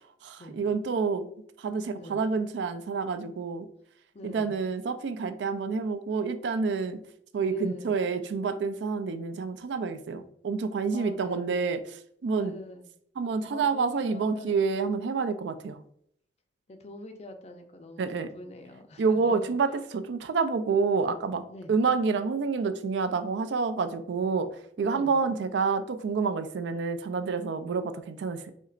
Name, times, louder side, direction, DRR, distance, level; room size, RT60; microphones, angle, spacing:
voice 1, 0.2-1.3 1.6-3.7 4.2-7.0 7.3-12.5 13.2-15.8 18.0-18.3 19.0-24.5 24.8-28.4, right 4 dB, 80° right, 11 dB, 0.4 m, -28 dB
voice 2, 4.1-4.6 7.4-8.0 10.9-11.5 12.3-12.9 13.5-14.9 16.7-18.1 18.3-19.5 21.5-21.7 24.8-25.3, left 1 dB, 35° left, 7 dB, 0.4 m, -44 dB
4.3 x 2.8 x 2.4 m, 0.68 s
head